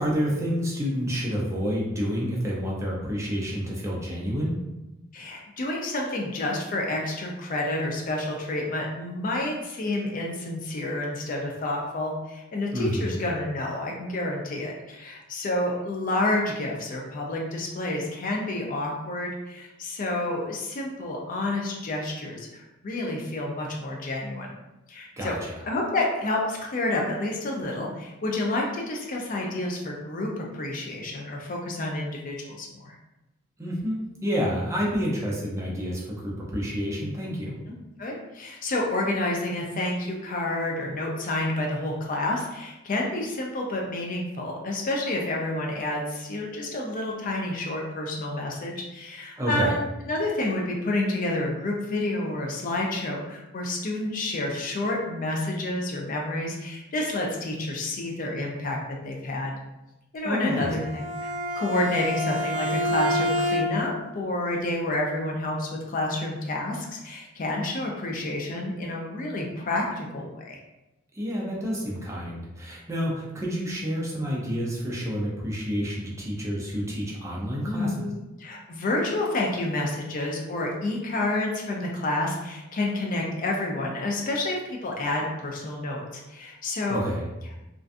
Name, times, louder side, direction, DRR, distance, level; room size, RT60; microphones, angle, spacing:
voice 1, 0.0-4.6 12.7-13.1 25.2-25.6 33.6-37.5 49.4-49.8 60.2-60.7 71.1-78.1 86.9-87.3, equal, 15° right, -4 dB, 0.5 m, -29 dB
voice 2, 5.1-24.5 24.9-25.3 25.7-33.0 38.0-58.8 59.0-59.6 60.1-70.6 77.6-78.1 78.4-87.0, left 2 dB, 40° left, 0 dB, 0.4 m, -29 dB
Bowed string instrument, 60.6-64.0, left 1 dB, 60° right, 0.6 m, -28 dB
2.5 x 2.2 x 2.4 m, 0.98 s
head